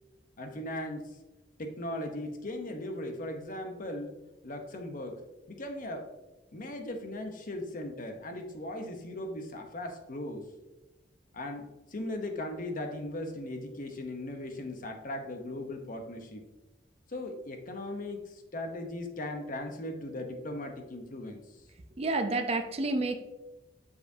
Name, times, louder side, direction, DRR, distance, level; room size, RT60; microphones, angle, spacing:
voice 1, 0.4-1.1 1.6-4.1 4.4-5.2 5.5-6.1 6.5-10.4 11.3-16.4 17.1-21.4, left 1 dB, 50° left, 5 dB, 0.8 m, -38 dB
voice 2, 22.0-23.2, right 2 dB, 35° right, 6 dB, 0.5 m, -29 dB
6.8 x 5.3 x 2.7 m, 1.0 s
head